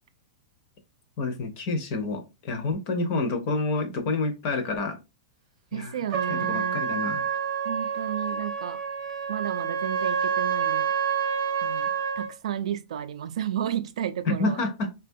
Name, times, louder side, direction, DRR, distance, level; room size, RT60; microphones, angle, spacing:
voice 1, 1.2-5.0 5.7-6.0 6.3-7.3 14.3-14.9, left 3 dB, 25° left, 0.5 m, -28 dB
voice 2, 5.7-6.9 7.6-8.8 9.3-10.9 11.6-14.6, right 10 dB, 70° right, 0.4 m, -32 dB
Trumpet, 6.1-12.3, right 7 dB, 35° right, 0.7 m, -28 dB
3.9 x 2.2 x 2.6 m
supercardioid pair, 180°, 4 cm